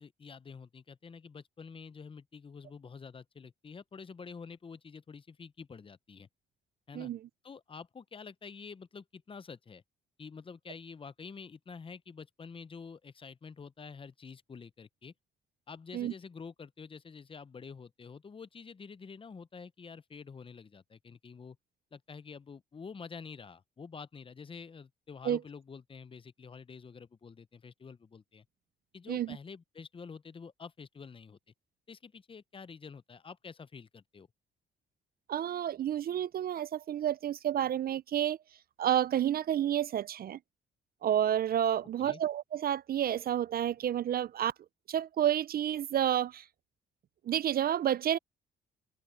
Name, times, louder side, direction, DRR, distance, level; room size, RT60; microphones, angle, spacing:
voice 1, 0.0-6.3 6.9-7.1 7.4-9.8 10.2-15.1 15.7-21.6 21.9-28.5 28.9-31.4 31.9-34.3 42.0-42.2, left 5 dB, 25° left, 0.7 m, -48 dB
voice 2, 35.3-38.4 38.8-40.4 41.0-44.5 44.9-46.4 47.2-48.2, right 10 dB, 50° right, 0.4 m, -30 dB
cardioid pair, 90°, 20 cm